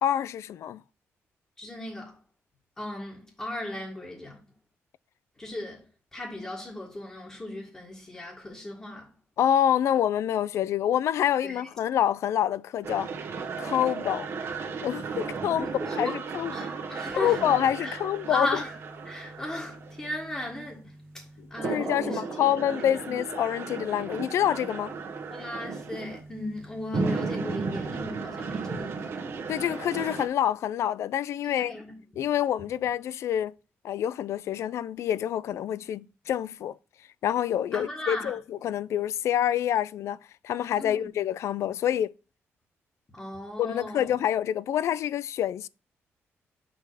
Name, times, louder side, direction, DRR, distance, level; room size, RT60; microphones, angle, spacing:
voice 1, 0.0-0.8 9.4-13.1 13.6-14.3 14.8-15.7 16.0-16.5 17.2-18.6 21.6-24.9 29.5-31.7 32.2-33.5 33.8-36.8 37.2-40.2 40.4-42.1 43.6-45.7, left 10 dB, 75° left, 0.3 m, -27 dB
voice 2, 1.6-2.2 2.8-4.4 5.4-5.8 6.1-9.1 11.4-11.6 15.4-16.2 16.5-17.4 17.8-18.0 18.3-18.8 19.1-21.2 21.5-23.1 25.3-29.3 31.4-32.0 37.7-38.4 40.8-41.1 43.1-44.2, left 1 dB, 20° left, 1.8 m, -36 dB
sound 1, 12.8-30.3, right 4 dB, 55° right, 1.3 m, -35 dB
5.5 x 5.5 x 4.8 m
cardioid pair, 130°, 5 cm